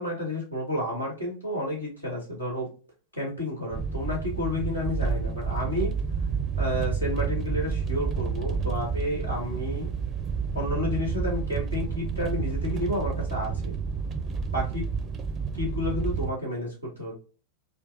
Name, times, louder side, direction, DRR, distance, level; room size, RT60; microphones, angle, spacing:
voice 1, 0.0-2.7 3.2-5.9 6.6-9.9 10.5-13.7 14.5-14.9 15.6-17.2, left 1 dB, 80° left, -3 dB, 1.8 m, -31 dB
sound 1, 3.7-16.3, right 5 dB, 25° right, 0.5 m, -30 dB
4.3 x 2.3 x 2.7 m, 0.37 s
figure-of-eight pair, 90°, 0 cm